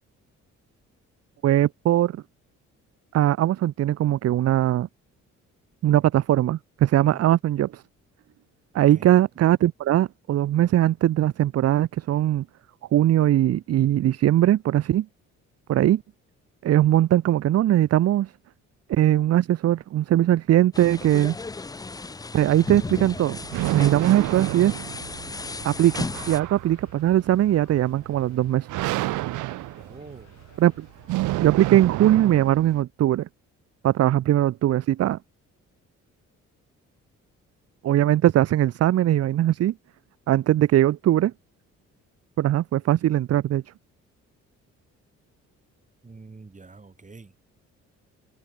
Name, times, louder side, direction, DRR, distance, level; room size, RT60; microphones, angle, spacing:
voice 1, 1.4-2.2 3.1-4.9 5.8-7.8 8.7-12.4 12.9-15.1 15.7-16.0 16.6-18.3 18.9-21.4 22.3-23.4 23.7-24.7 25.6-28.7 30.6-30.9 31.4-33.3 33.8-35.2 37.8-39.7 40.3-41.3 42.4-43.6, right 13 dB, 55° right, 0.6 m, -20 dB
voice 2, 7.0-7.3 8.8-9.0 29.8-30.3 46.0-47.3, right 3 dB, 25° right, 6.5 m, -44 dB
sound 1, 20.7-26.4, left 3 dB, 15° left, 0.5 m, -35 dB
sound 2, 22.4-32.8, right 18 dB, 85° right, 0.7 m, -30 dB
sound 3, 25.5-31.5, left 9 dB, 60° left, 6.2 m, -57 dB
cardioid pair, 90°, 30 cm